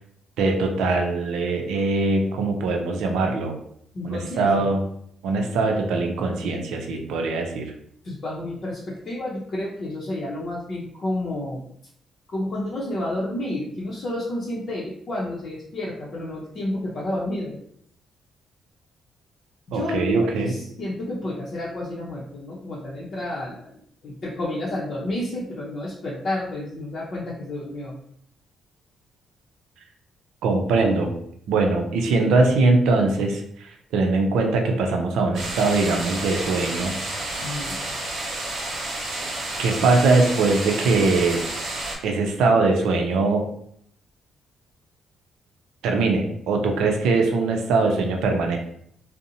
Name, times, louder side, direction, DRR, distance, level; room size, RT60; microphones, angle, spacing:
voice 1, 0.4-3.6 4.0-4.8 5.2-7.7 19.7-20.5 30.4-31.1 31.5-36.9 39.6-41.4 42.0-43.5 45.8-48.6, right 3 dB, 85° right, 3 dB, 0.5 m, -21 dB
voice 2, 3.9-4.7 8.0-11.6 12.3-17.6 19.7-27.9 37.4-37.8, left 1 dB, 50° left, -6 dB, 0.6 m, -30 dB
sound 1, 35.3-42.0, right 2 dB, 65° right, 0.9 m, -30 dB
2.6 x 2.0 x 2.7 m, 0.67 s
cardioid pair, 90°, 0 cm